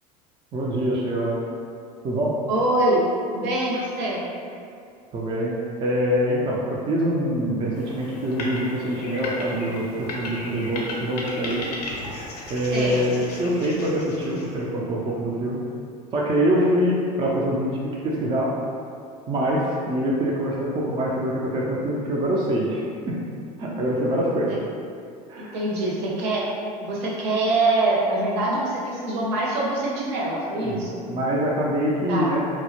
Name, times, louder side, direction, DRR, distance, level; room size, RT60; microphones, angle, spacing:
voice 1, 0.5-1.4 2.0-2.4 5.1-11.6 12.5-15.6 16.1-18.5 19.3-23.2 23.6-24.6 25.3-25.6 30.6-30.8 31.1-32.4, equal, 25° right, -4 dB, 0.3 m, -24 dB
voice 2, 2.5-3.0 3.3-4.2 12.7-13.0 24.5-24.6 25.4-26.4 26.8-31.0 32.1-32.3, right 2 dB, 60° right, -4 dB, 0.7 m, -24 dB
sound 1, 7.7-14.7, left 2 dB, 90° left, 0.5 m, -35 dB
2.1 x 2.0 x 2.8 m, 2.4 s
hypercardioid pair, 85°, 20 cm